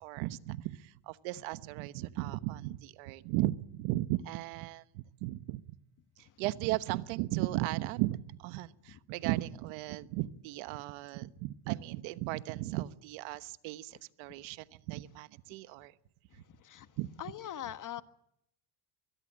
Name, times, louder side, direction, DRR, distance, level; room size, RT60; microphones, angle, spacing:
voice 1, 0.0-5.8 6.4-15.9 17.0-17.1, right 17 dB, 85° right, 14 dB, 1.2 m, -36 dB
voice 2, 16.3-16.9 17.2-18.0, left 11 dB, 40° left, 11 dB, 1.5 m, -42 dB
24.0 x 21.5 x 7.5 m, 0.77 s
cardioid pair, 120°, 46 cm